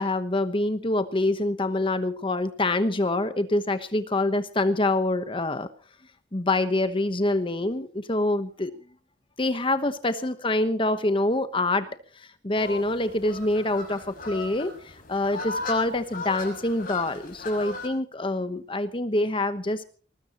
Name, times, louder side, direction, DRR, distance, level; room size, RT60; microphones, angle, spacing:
voice 1, 0.0-5.7 6.3-8.7 9.4-11.9 12.4-19.8, left 2 dB, 30° left, 11 dB, 1.1 m, -26 dB
sound 1, 12.6-17.9, left 3 dB, 50° left, 5.7 m, -37 dB
21.5 x 20.5 x 3.0 m, 0.40 s
head